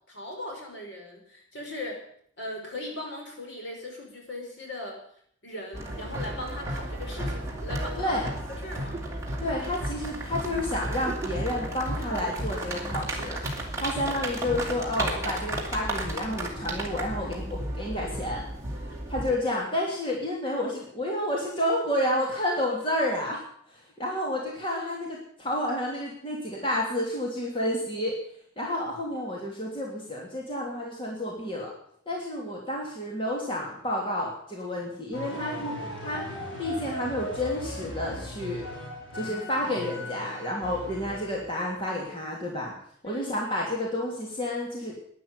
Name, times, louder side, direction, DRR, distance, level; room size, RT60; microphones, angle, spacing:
voice 1, 0.1-2.0 2.4-5.0 5.4-8.2 8.6-9.0 43.0-43.3, left 1 dB, 60° left, 0 dB, 5.5 m, -38 dB
sound 1, 5.7-19.4, right 1 dB, 15° right, 3.0 m, -33 dB
voice 2, 8.0-8.3 9.4-13.4 13.8-18.5 19.1-23.4 23.7-28.1 28.6-31.7 32.1-35.8 36.0-36.2 36.6-38.6 39.1-42.7 43.0-45.0, left 1 dB, 25° left, -2 dB, 3.0 m, -30 dB
sound 2, 35.1-41.6, equal, 75° left, 5.7 m, -38 dB
12.0 x 10.5 x 9.8 m, 0.65 s
head